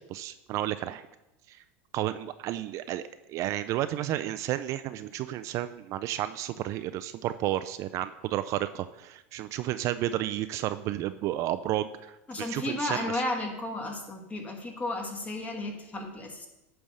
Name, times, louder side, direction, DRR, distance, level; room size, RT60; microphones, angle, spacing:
voice 1, 0.1-1.0 1.5-1.6 1.9-11.9 12.4-13.2, right 13 dB, 45° right, 12 dB, 0.3 m, -32 dB
voice 2, 12.3-16.5, left 2 dB, 20° left, 2 dB, 1.6 m, -33 dB
8.8 x 3.4 x 6.5 m, 0.92 s
supercardioid pair, 115°, 7 cm